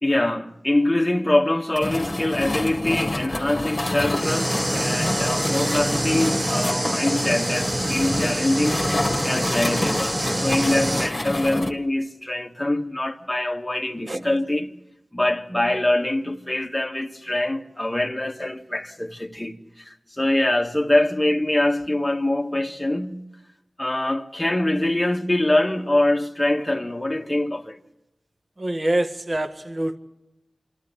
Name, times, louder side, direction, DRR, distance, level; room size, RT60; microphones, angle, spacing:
voice 1, 0.0-8.8 9.2-14.7 15.1-23.3 23.8-27.8, left 1 dB, 15° left, 1.8 m, -24 dB
sound 1, 1.7-11.7, left 1 dB, 35° left, 2.0 m, -28 dB
sound 2, 4.1-11.1, right 1 dB, 30° right, 1.0 m, -26 dB
voice 2, 14.1-14.4 28.6-30.0, right 1 dB, 50° right, 1.5 m, -25 dB
26.0 x 14.0 x 8.6 m
cardioid pair, 40°, 0 cm